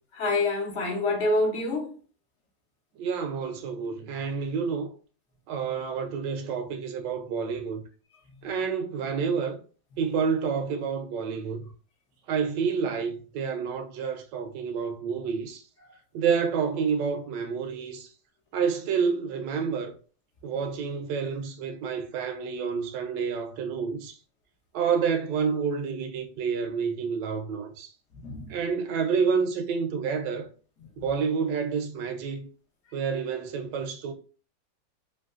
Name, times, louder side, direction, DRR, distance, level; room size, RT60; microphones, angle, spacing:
voice 1, 0.1-1.9 28.2-28.5 31.0-31.1, left 2 dB, 55° left, 0.8 m, -27 dB
voice 2, 3.0-4.9 5.5-7.8 8.4-9.6 10.0-11.6 12.3-15.6 16.1-18.1 18.5-19.9 20.4-24.1 24.7-27.9 28.5-30.5 31.0-32.5 32.9-34.1, right 6 dB, 75° right, 1.2 m, -29 dB
3.2 x 2.8 x 2.3 m
omnidirectional pair, 2.1 m